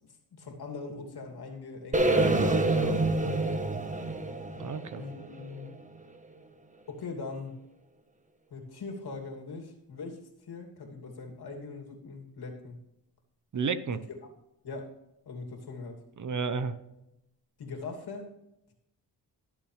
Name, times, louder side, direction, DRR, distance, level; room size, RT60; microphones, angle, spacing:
voice 1, 0.3-3.2 4.9-5.7 6.9-7.6 8.5-12.8 13.9-14.3 14.6-14.9 15.3-16.0 17.6-18.3, left 4 dB, 65° left, 2 dB, 2.7 m, -41 dB
sound 1, 1.9-6.0, right 2 dB, 20° right, 1.2 m, -27 dB
voice 2, 2.0-3.0 4.6-5.0 13.5-14.0 16.2-16.7, right 5 dB, 45° right, 12 dB, 1.0 m, -33 dB
21.0 x 7.4 x 3.3 m, 0.89 s
cardioid pair, 75°, 41 cm